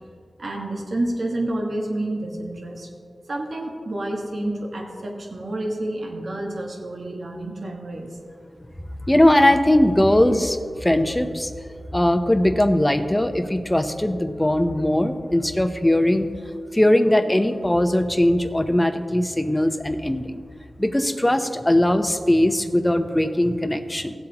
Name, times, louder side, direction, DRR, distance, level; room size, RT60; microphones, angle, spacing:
voice 1, 0.4-2.9 3.3-8.2, right 1 dB, 70° right, 0 dB, 1.5 m, -29 dB
voice 2, 9.1-11.5 11.9-16.3 16.7-20.4 20.8-24.1, left 1 dB, 15° left, 8 dB, 0.9 m, -20 dB
17.0 x 7.7 x 3.0 m, 2.2 s
cardioid pair, 45°, 0 cm